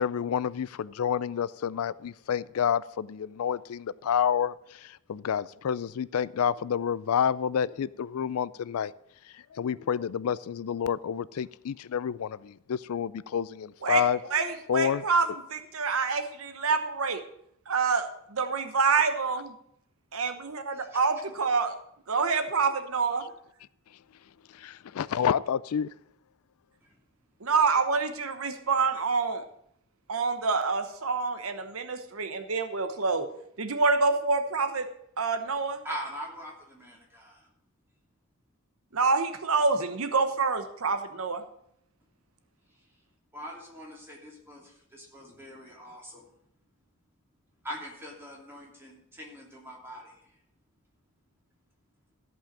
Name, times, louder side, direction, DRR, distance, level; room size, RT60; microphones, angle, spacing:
voice 1, 0.0-8.9 9.3-15.0 24.5-25.9, left 8 dB, 80° left, 0.4 m, -29 dB
voice 2, 14.3-17.2 17.7-19.5 20.1-21.7 22.1-23.2 27.4-29.4 30.1-33.3 33.6-34.9 35.2-35.8 38.9-41.4, right 4 dB, 70° right, 1.0 m, -27 dB
voice 3, 35.8-37.5 42.7-42.8 43.3-46.3 47.6-50.4, equal, 10° right, 2.9 m, -42 dB
14.5 x 5.5 x 7.4 m
head